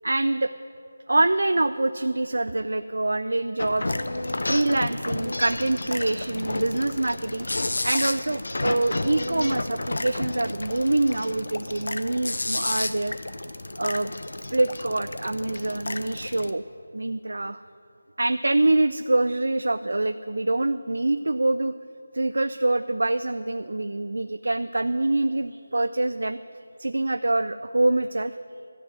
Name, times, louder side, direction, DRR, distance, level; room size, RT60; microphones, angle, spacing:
voice 1, 0.0-0.5 1.1-4.0 4.5-7.5 7.8-13.1 13.8-14.1 14.5-16.6 16.9-17.6 18.2-21.7 22.1-26.4 26.8-28.3, right 2 dB, 80° right, 11 dB, 0.4 m, -25 dB
sound 1, 3.6-16.5, left 2 dB, 70° left, 0.7 m, -31 dB
13.0 x 6.2 x 9.5 m, 2.7 s
figure-of-eight pair, 175°, 0 cm